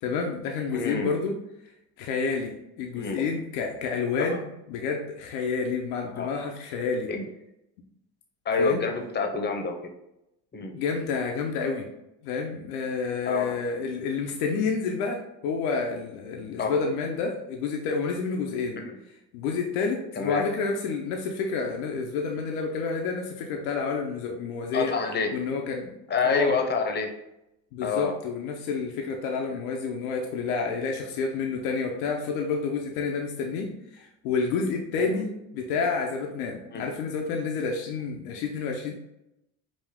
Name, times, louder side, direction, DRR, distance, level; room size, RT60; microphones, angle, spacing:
voice 1, 0.0-1.4 2.0-7.1 8.6-8.8 10.6-11.9 12.2-18.8 19.3-24.9 25.3-25.9 26.2-26.6 27.7-38.9, left 4 dB, 80° left, 2 dB, 0.8 m, -29 dB
voice 2, 0.7-1.1 3.0-3.2 4.3-4.4 6.1-6.3 7.1-7.2 8.4-9.7 10.5-10.7 13.3-13.6 16.6-16.8 18.8-19.0 20.1-20.4 24.7-25.3 26.1-27.1 27.8-28.1 35.0-35.2 36.7-36.8, left 4 dB, 25° left, 3 dB, 0.9 m, -27 dB
5.1 x 2.5 x 3.6 m, 0.86 s
supercardioid pair, 90°, 42 cm